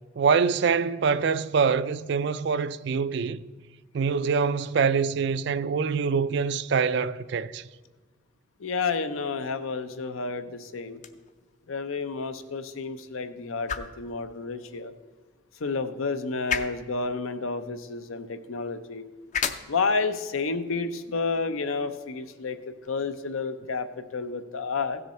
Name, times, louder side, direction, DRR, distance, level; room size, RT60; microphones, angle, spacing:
voice 1, 0.2-3.4 3.9-7.6, right 5 dB, 55° right, 0.3 m, -25 dB
voice 2, 8.6-11.0 11.7-14.9 15.6-19.1 19.7-22.6 22.9-25.0, left 4 dB, 85° left, 0.7 m, -30 dB
sound 1, 10.9-22.9, left 7 dB, 35° left, 0.5 m, -39 dB
16.0 x 6.7 x 4.3 m
head